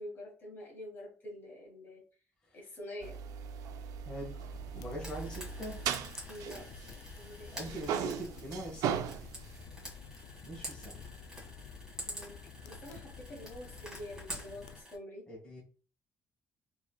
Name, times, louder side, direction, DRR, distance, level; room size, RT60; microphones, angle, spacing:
voice 1, 0.0-2.0 2.5-3.2 6.3-7.8 12.0-15.3, left 1 dB, 40° left, -2 dB, 1.3 m, -47 dB
sound 1, 3.0-7.3 7.5-9.6, right 8 dB, 90° right, 0.3 m, -38 dB
voice 2, 4.0-4.5 4.7-5.8 7.5-9.2 10.4-11.0 15.3-15.6, right 1 dB, 15° left, -3 dB, 1.4 m, -42 dB
sound 2, 4.5-14.8, left 6 dB, 90° left, 0.3 m, -50 dB
Frying (food), 5.0-15.0, right 1 dB, 10° right, 1.7 m, -48 dB
4.5 x 2.8 x 2.2 m, 0.38 s
cardioid pair, 140°, 6 cm